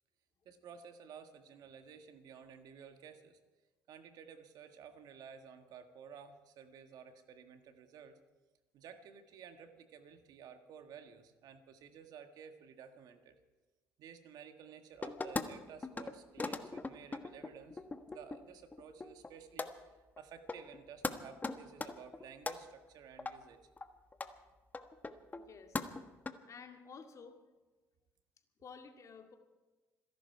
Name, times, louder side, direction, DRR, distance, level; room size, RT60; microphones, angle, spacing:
voice 1, 0.4-3.4 3.9-8.2 8.7-13.3 14.0-17.8 18.1-23.6, right 7 dB, 70° right, 7 dB, 1.7 m, -54 dB
sound 1, 15.0-15.5 15.8-16.1 16.4-18.4 18.7-19.3 19.6-19.7 20.2-20.3 20.5-20.8 21.0-21.1 21.4-22.6 23.2-23.3 23.8-23.9 24.1-24.3 24.7-25.5 25.8-26.3, left 3 dB, 25° left, 1.3 m, -39 dB
voice 2, 25.4-25.8 26.5-27.4 28.6-29.4, left 5 dB, 50° left, 5 dB, 2.2 m, -52 dB
26.0 x 11.5 x 4.7 m, 1.2 s
supercardioid pair, 65°, 7 cm